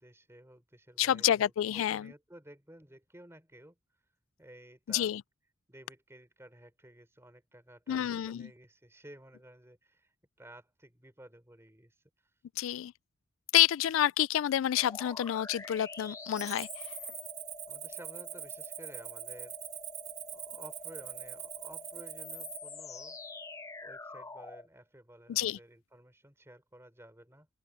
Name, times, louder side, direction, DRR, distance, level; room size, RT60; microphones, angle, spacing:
voice 1, 0.0-3.8 4.4-5.1 5.7-10.1 10.4-12.0 17.7-19.6 20.3-23.2 23.8-27.5, right 1 dB, 15° right, 3.8 m, -54 dB
voice 2, 1.0-2.1 4.9-5.2 7.9-8.5 12.6-12.9 13.5-16.8 25.3-25.6, left 11 dB, 80° left, 0.3 m, -28 dB
sound 1, 14.8-24.7, left 3 dB, 15° left, 0.7 m, -47 dB
Cricket, 16.4-22.6, right 11 dB, 35° right, 2.2 m, -43 dB
open air
head